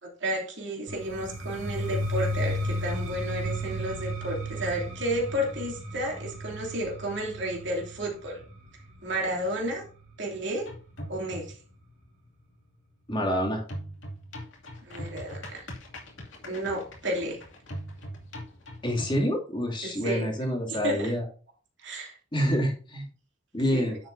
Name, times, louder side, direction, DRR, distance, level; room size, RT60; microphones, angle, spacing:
voice 1, 0.0-8.4 9.0-9.8 10.2-10.7 11.1-11.6 14.8-15.7 16.5-17.4 19.8-20.3 20.7-21.1 21.8-22.1 23.7-24.0, equal, 60° right, -1 dB, 2.9 m, -32 dB
sound 1, 0.9-10.7, equal, 80° right, 2.8 m, -34 dB
sound 2, 10.7-11.7 13.7-19.2, equal, 65° left, 2.6 m, -41 dB
voice 2, 13.1-13.6 18.8-21.2 22.3-23.1 23.5-24.0, equal, 25° left, 0 dB, 2.5 m, -27 dB
10.0 x 7.6 x 2.7 m, 0.38 s
head